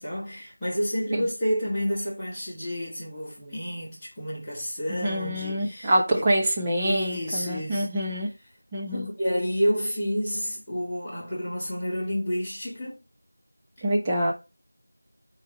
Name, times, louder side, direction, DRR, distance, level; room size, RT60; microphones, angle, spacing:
voice 1, 0.0-6.3 6.8-7.9 8.9-13.0, equal, 5° left, 2.3 m, -30 dB
voice 2, 4.9-8.3 8.7-9.1 13.8-14.3, right 1 dB, 10° right, 0.9 m, -26 dB
12.0 x 4.1 x 3.1 m
figure-of-eight pair, 175°, 0 cm